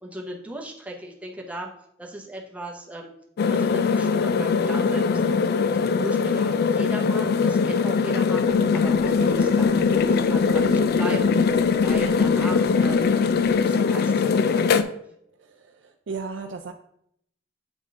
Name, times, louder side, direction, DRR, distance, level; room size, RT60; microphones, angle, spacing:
voice 1, 0.0-1.7 2.0-3.1 3.4-5.2 5.7-11.3 11.7-13.2 13.5-15.0, right 1 dB, 5° right, 0 dB, 0.9 m, -37 dB
sound 1, 3.4-14.8, left 5 dB, 55° left, 0.3 m, -21 dB
sound 2, 8.4-13.6, left 2 dB, 45° right, 1.2 m, -36 dB
voice 2, 15.4-16.7, right 4 dB, 70° right, 4 dB, 0.5 m, -35 dB
8.1 x 3.6 x 3.7 m, 0.71 s
head